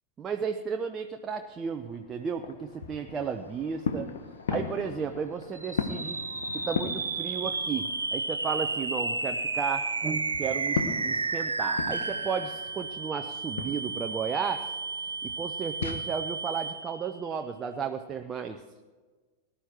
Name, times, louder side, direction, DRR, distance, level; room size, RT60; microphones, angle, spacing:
voice 1, 0.2-4.1 4.5-6.2 6.5-14.7 15.2-18.6, right 6 dB, 20° right, 5 dB, 0.8 m, -34 dB
sound 1, 1.3-8.2 8.5-16.0, left 6 dB, 60° left, 1.2 m, -38 dB
sound 2, 5.5-17.1, right 3 dB, 80° right, 1.0 m, -32 dB
19.0 x 11.5 x 4.6 m, 1.3 s
figure-of-eight pair, 90°, 0 cm